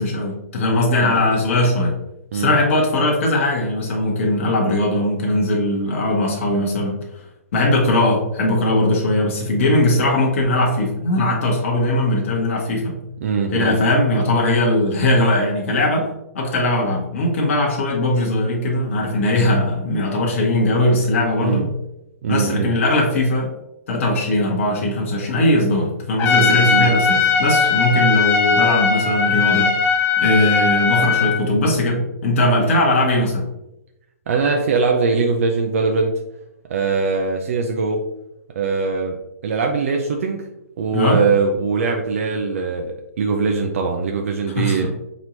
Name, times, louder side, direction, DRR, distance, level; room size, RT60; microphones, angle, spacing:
voice 1, 0.0-2.0 2.3-7.0 7.5-13.0 13.5-16.1 16.3-21.7 22.3-23.5 23.9-33.5 40.9-41.2 44.6-44.9, left 1 dB, 50° left, -1 dB, 1.0 m, -19 dB
voice 2, 13.2-13.8 21.4-21.7 22.2-22.8 26.2-26.9 34.3-36.1 36.7-38.0 38.6-39.2 39.4-40.5 40.8-44.9, right 4 dB, 60° right, 3 dB, 0.5 m, -21 dB
Trumpet, 26.2-31.4, left 5 dB, 25° left, 0.6 m, -18 dB
4.4 x 3.0 x 2.6 m, 0.88 s
figure-of-eight pair, 125°, 8 cm